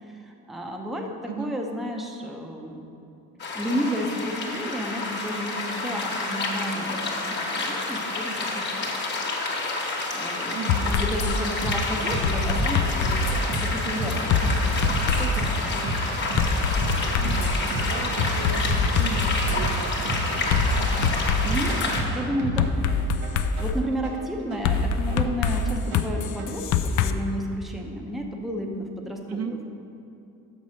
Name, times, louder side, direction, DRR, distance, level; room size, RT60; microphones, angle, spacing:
voice 1, 0.3-1.1 1.4-2.8 3.5-8.9 10.1-10.5 10.8-15.8 21.4-21.8 22.1-22.7 23.6-29.6, equal, ahead, 1 dB, 0.6 m, -32 dB
sound 1, 3.4-22.0, left 3 dB, 35° left, 1.3 m, -29 dB
voice 2, 10.5-11.0 17.2-21.0 29.3-29.5, right 7 dB, 50° right, 5 dB, 0.6 m, -36 dB
sound 2, 10.7-11.4 12.2-13.7 14.3-15.5 16.4-17.7 18.2-19.6 20.5-21.9 22.6-23.8 24.6-27.1, left 5 dB, 60° left, 0.5 m, -24 dB
sound 3, 11.6-26.6, right 1 dB, 75° right, 1.6 m, -31 dB
7.2 x 5.3 x 6.3 m, 2.6 s
cardioid pair, 135°, 33 cm